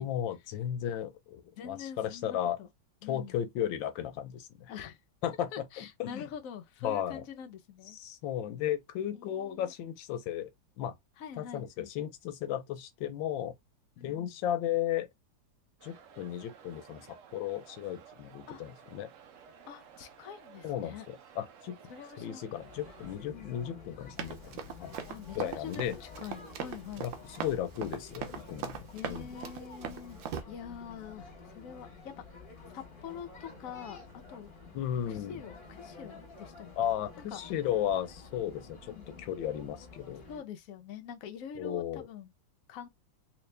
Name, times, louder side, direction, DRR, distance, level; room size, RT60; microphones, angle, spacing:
voice 1, 0.0-2.6 3.0-4.7 5.2-6.2 6.8-7.2 7.9-10.5 10.8-10.9 11.4-13.6 14.0-15.1 15.8-19.1 20.6-21.8 22.2-24.9 25.3-26.0 27.0-27.1 27.4-28.8 29.1-29.4 34.7-35.4 36.8-40.2 41.6-42.1, left 10 dB, 85° left, 1.4 m, -35 dB
voice 2, 1.6-2.7 3.0-3.4 4.7-5.0 5.5-8.0 9.2-9.7 11.2-11.9 14.0-14.4 18.5-18.6 19.7-21.1 21.9-22.5 23.3-23.5 25.1-27.1 28.9-30.2 30.5-32.1 32.7-34.0 34.3-34.5 35.1-36.7 37.2-37.4 38.8-39.1 40.3-42.3 42.7-42.9, left 8 dB, 65° left, 0.8 m, -45 dB
sound 1, 15.8-23.2, right 7 dB, 70° right, 0.7 m, -55 dB
sound 2, 22.5-40.4, left 4 dB, 30° left, 1.1 m, -50 dB
Run, 24.2-30.4, right 8 dB, 90° right, 1.4 m, -40 dB
3.2 x 3.0 x 3.2 m
omnidirectional pair, 2.0 m